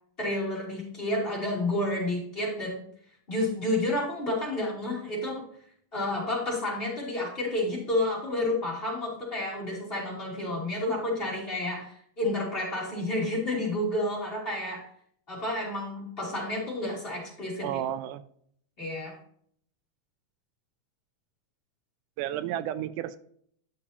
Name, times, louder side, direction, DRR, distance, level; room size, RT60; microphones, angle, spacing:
voice 1, 0.2-2.9 3.3-5.5 5.9-14.9 15.3-17.8 18.8-19.2, left 1 dB, 20° left, -4 dB, 2.7 m, -30 dB
voice 2, 17.6-18.2 22.2-23.2, right 11 dB, 85° right, 13 dB, 2.1 m, -32 dB
11.5 x 7.1 x 2.8 m, 0.64 s
omnidirectional pair, 3.6 m